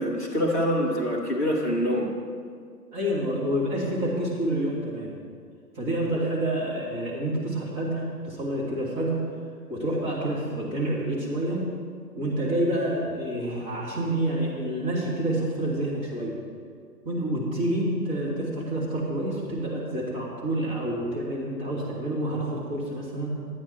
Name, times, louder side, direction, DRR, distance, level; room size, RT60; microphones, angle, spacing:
voice 1, 0.0-2.2, equal, 10° left, -5 dB, 0.4 m, -25 dB
voice 2, 2.9-5.1 5.8-9.2 9.7-11.7 12.2-16.3 17.0-23.3, right 1 dB, 25° right, -5 dB, 1.9 m, -28 dB
12.0 x 9.3 x 4.2 m, 2.1 s
figure-of-eight pair, 120°, 49 cm